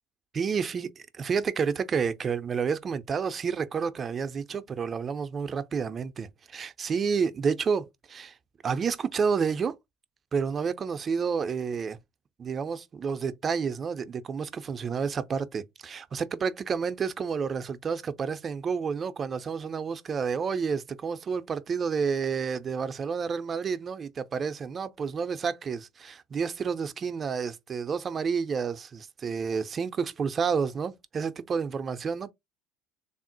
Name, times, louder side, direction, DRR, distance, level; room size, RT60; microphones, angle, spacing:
voice 1, 0.3-0.9 1.1-8.4 8.6-9.8 10.3-12.0 12.4-32.3, right 6 dB, 35° right, 0.3 m, -30 dB
3.5 x 2.0 x 2.6 m
hypercardioid pair, 70°, 0 cm